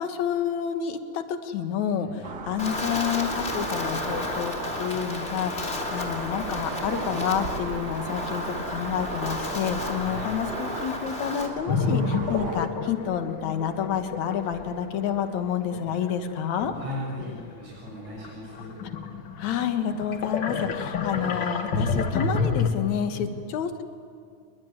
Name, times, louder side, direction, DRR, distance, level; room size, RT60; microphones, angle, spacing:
voice 1, 0.0-4.5 4.8-16.7 19.4-23.8, left 8 dB, 65° left, 8 dB, 2.7 m, -29 dB
sound 1, 2.2-12.7, right 4 dB, 45° right, 1.4 m, -37 dB
Wind, 2.6-11.5, left 2 dB, 20° left, 2.9 m, -32 dB
voice 2, 9.9-10.3 15.7-15.8 16.7-18.8 23.1-23.4, left 1 dB, 60° right, -4 dB, 7.9 m, -38 dB
sound 2, 11.7-17.6 18.1-22.7, left 4 dB, 50° left, 1.5 m, -29 dB
28.0 x 22.0 x 9.7 m, 2.2 s
omnidirectional pair, 3.7 m